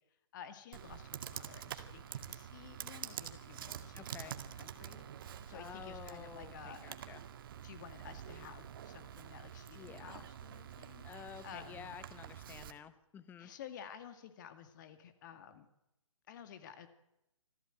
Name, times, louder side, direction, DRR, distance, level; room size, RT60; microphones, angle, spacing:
voice 1, 0.1-5.0 5.4-6.9 7.6-11.0 11.4-12.0 13.4-15.7 16.3-16.9, left 8 dB, 35° left, 10 dB, 2.2 m, -53 dB
Computer keyboard, 0.7-12.7, right 9 dB, 40° right, 2.0 m, -47 dB
voice 2, 3.9-4.4 5.5-7.2 9.7-10.3 11.0-13.5, left 8 dB, 10° left, 15 dB, 1.1 m, -51 dB
26.0 x 16.0 x 9.1 m, 0.89 s
figure-of-eight pair, 135°, 17 cm